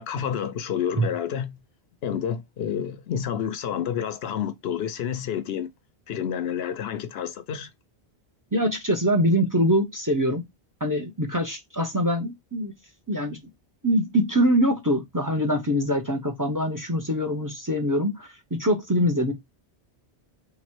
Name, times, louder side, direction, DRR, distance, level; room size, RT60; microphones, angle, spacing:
voice 1, 0.0-1.6 2.0-5.7 6.1-7.7, left 8 dB, 75° left, 0.8 m, -29 dB
voice 2, 8.5-10.4 10.8-12.7 13.1-13.4 13.8-18.3 18.6-19.3, equal, 20° right, 0.7 m, -23 dB
3.6 x 3.0 x 4.4 m
omnidirectional pair, 1.1 m